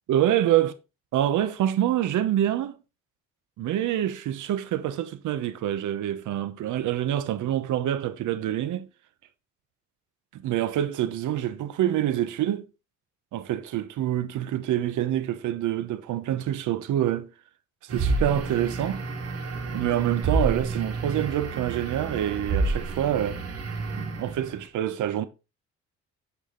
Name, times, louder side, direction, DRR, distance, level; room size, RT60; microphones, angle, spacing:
voice 1, 0.1-0.7 1.1-2.8 3.6-8.9 10.3-12.7 13.3-17.3 17.8-19.0 19.7-23.4 24.2-25.3, right 12 dB, 80° right, 0.9 m, -26 dB
sound 1, 17.9-24.6, right 3 dB, 55° right, 2.0 m, -29 dB
9.8 x 4.8 x 3.8 m
cardioid pair, 90°, 30 cm